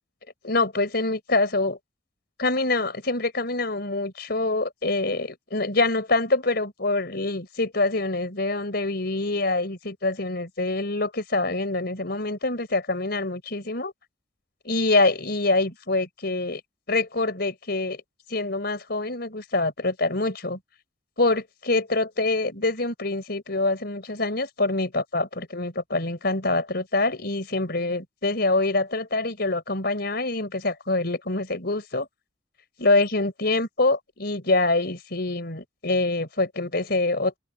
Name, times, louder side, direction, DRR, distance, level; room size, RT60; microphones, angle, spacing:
voice 1, 0.4-1.8 2.4-13.9 14.6-16.6 16.9-18.0 18.3-20.6 21.2-32.1 32.8-37.4, left 2 dB, 50° left, 4.3 m, -25 dB
head